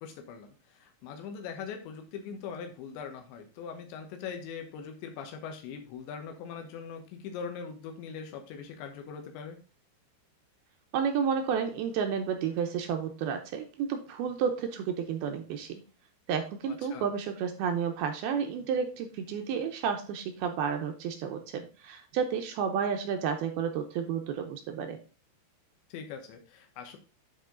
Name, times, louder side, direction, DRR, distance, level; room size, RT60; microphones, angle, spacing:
voice 1, 0.0-9.6 16.7-17.1 25.9-27.0, left 6 dB, 90° left, 5 dB, 3.4 m, -41 dB
voice 2, 10.9-15.8 16.3-25.0, right 7 dB, 75° right, 5 dB, 2.5 m, -31 dB
9.8 x 4.7 x 3.8 m, 0.34 s
omnidirectional pair, 5.0 m